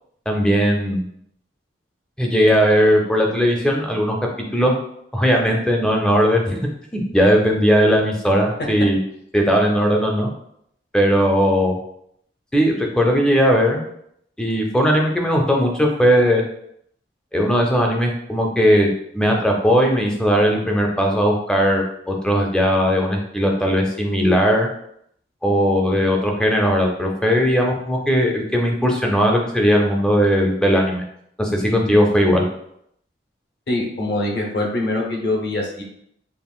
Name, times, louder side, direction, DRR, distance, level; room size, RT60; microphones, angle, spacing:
voice 1, 0.3-1.0 2.2-4.2 4.5-4.7 5.1-6.6 6.9-9.0 9.3-10.3 10.9-11.8 12.5-13.8 14.4-16.4 17.3-24.7 25.4-31.0 31.4-32.4, equal, 5° left, 0 dB, 0.5 m, -18 dB
voice 2, 33.7-35.8, left 2 dB, 60° left, -1 dB, 0.9 m, -23 dB
5.5 x 2.4 x 2.3 m, 0.72 s
head